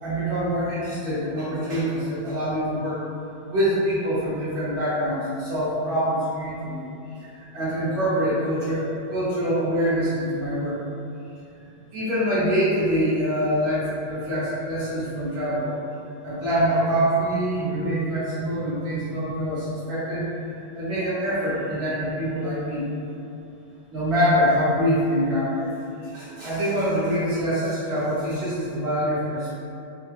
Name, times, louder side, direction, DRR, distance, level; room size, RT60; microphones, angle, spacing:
voice 1, 0.0-3.0 3.5-6.9 7.2-10.8 11.6-11.7 11.9-15.7 16.2-20.3 20.7-22.9 23.9-25.7 26.0-29.6, equal, 50° right, -10 dB, 1.5 m, -25 dB
4.5 x 2.3 x 3.0 m, 2.6 s
omnidirectional pair, 2.2 m